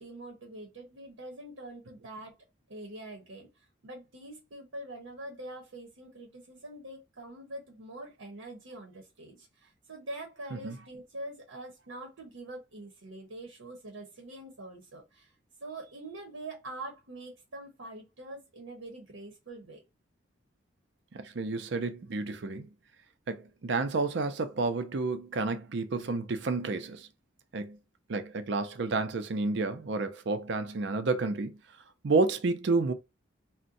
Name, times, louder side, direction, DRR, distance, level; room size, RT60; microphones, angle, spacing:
voice 1, 0.0-2.3 2.7-3.5 3.8-15.3 15.6-19.8, right 1 dB, 85° right, 0.9 m, -44 dB
voice 2, 21.1-22.7 23.3-27.1 27.5-27.8 28.1-31.6 32.0-32.9, right 3 dB, 65° right, 0.5 m, -30 dB
2.6 x 2.1 x 3.8 m
head